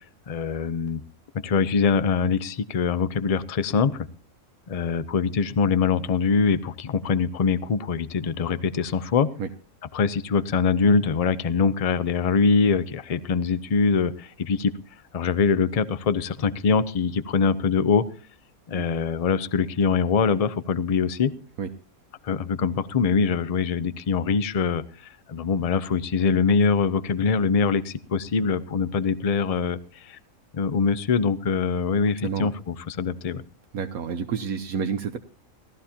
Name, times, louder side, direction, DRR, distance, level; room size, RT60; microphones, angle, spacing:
voice 1, 0.3-1.0 1.4-4.1 4.7-9.3 9.9-14.7 15.1-18.0 18.7-21.3 22.2-30.2 30.5-33.4, left 5 dB, 60° left, 15 dB, 0.4 m, -23 dB
voice 2, 33.7-35.2, right 6 dB, 80° right, 6 dB, 1.3 m, -29 dB
18.0 x 13.0 x 2.9 m, 0.42 s
omnidirectional pair, 1.5 m